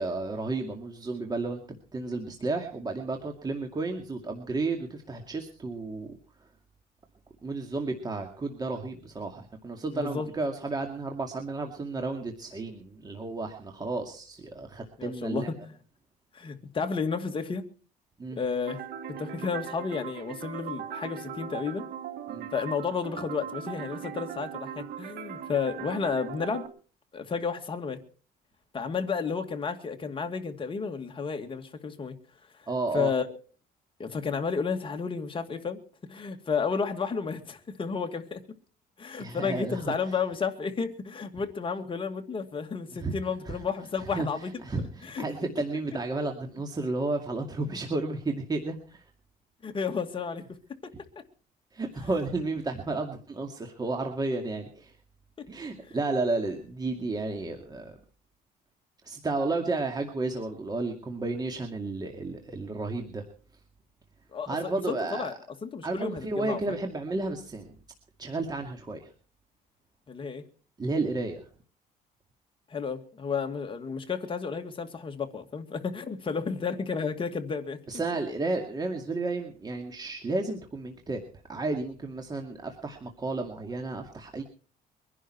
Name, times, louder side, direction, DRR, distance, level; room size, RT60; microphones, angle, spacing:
voice 1, 0.0-1.6 1.9-6.2 7.4-15.5 18.2-18.4 22.3-22.5 32.7-33.1 39.2-39.9 42.9-43.2 43.5-43.6 44.0-44.3 44.6-49.0 51.7-54.9 55.5-58.0 59.0-63.2 64.5-65.3 65.8-67.7 68.2-69.1 70.8-71.5 77.9-81.2 81.5-84.4, right 3 dB, 25° right, 3 dB, 2.3 m, -32 dB
voice 2, 9.9-10.3 15.0-15.5 16.3-17.7 18.4-18.8 19.2-21.9 22.5-26.7 27.1-28.0 28.7-32.1 32.9-33.3 34.0-38.4 39.0-44.5 45.0-45.2 47.7-47.8 49.6-50.6 50.8-50.9 55.4-55.5 55.9-56.0 64.3-65.3 65.6-66.8 70.1-70.4 72.7-77.8, left 5 dB, 30° left, 5 dB, 2.2 m, -32 dB
sound 1, 18.7-26.7, right 9 dB, 65° right, 2.1 m, -39 dB
23.5 x 11.0 x 4.5 m, 0.40 s
cardioid pair, 110°, 17 cm